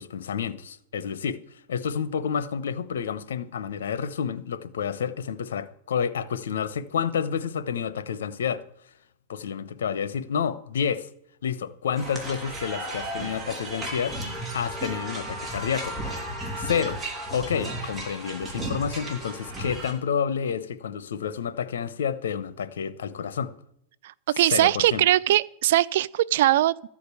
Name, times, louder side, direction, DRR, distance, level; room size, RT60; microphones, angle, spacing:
voice 1, 0.0-1.4 1.7-8.6 9.3-11.1 11.4-16.0 16.6-17.0 17.3-23.5 24.5-25.0, left 7 dB, 90° left, 0.9 m, -29 dB
sound 1, 12.0-19.9, right 1 dB, 15° right, 3.2 m, -34 dB
voice 2, 24.0-26.9, right 14 dB, 70° right, 0.4 m, -21 dB
14.0 x 5.2 x 8.3 m
supercardioid pair, 135°, 0 cm